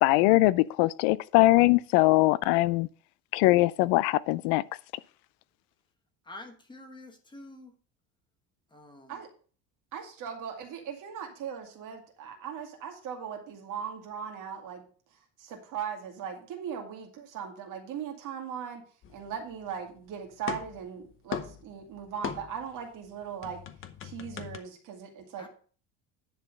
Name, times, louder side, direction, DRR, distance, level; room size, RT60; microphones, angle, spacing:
voice 1, 0.0-2.9 3.3-4.6, left 19 dB, 75° left, 0.6 m, -22 dB
voice 2, 6.2-7.7 8.7-9.2 25.4-25.5, left 2 dB, 10° left, 1.3 m, -47 dB
voice 3, 9.9-14.9 15.4-18.8 19.1-23.6 24.0-25.5, right 7 dB, 50° right, 2.4 m, -39 dB
sound 1, 19.0-20.0 20.2-22.8 23.0-24.6, left 8 dB, 30° left, 0.8 m, -39 dB
10.0 x 4.3 x 6.6 m
cardioid pair, 165°, 40 cm